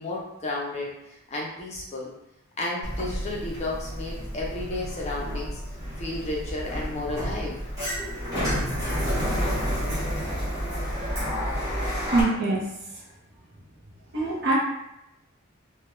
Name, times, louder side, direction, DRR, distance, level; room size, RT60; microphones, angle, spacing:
voice 1, 0.0-2.1 2.6-5.6 6.0-7.6, left 2 dB, 30° left, -3 dB, 0.5 m, -32 dB
Sliding door, 2.8-12.2, equal, 15° right, 0.8 m, -30 dB
voice 2, 12.1-12.7 14.1-14.6, right 2 dB, 55° right, -3 dB, 0.6 m, -23 dB
2.2 x 2.2 x 3.0 m, 0.86 s
head